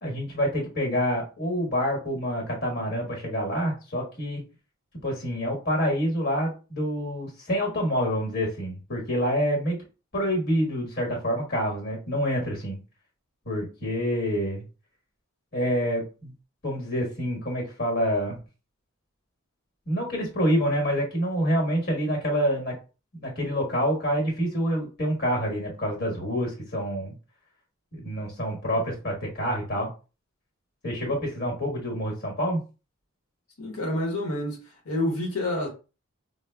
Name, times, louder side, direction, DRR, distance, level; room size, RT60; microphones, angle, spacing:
voice 1, 0.0-4.4 5.0-9.8 10.1-12.8 13.4-14.6 15.5-16.3 16.6-18.4 19.9-22.7 23.1-27.1 27.9-29.9 30.8-32.6, equal, 45° left, 1.3 m, -27 dB
voice 2, 33.6-35.7, left 1 dB, 85° left, 0.9 m, -28 dB
4.9 x 2.1 x 2.2 m
head